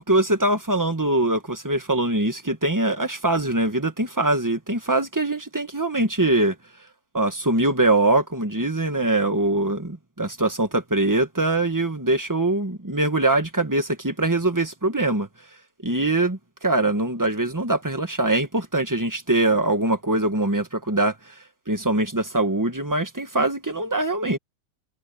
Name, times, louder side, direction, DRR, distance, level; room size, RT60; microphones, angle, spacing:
voice 1, 0.0-6.5 7.1-15.3 15.8-21.3 21.7-24.4, right 2 dB, 10° right, 1.4 m, -23 dB
omnidirectional pair, 1.9 m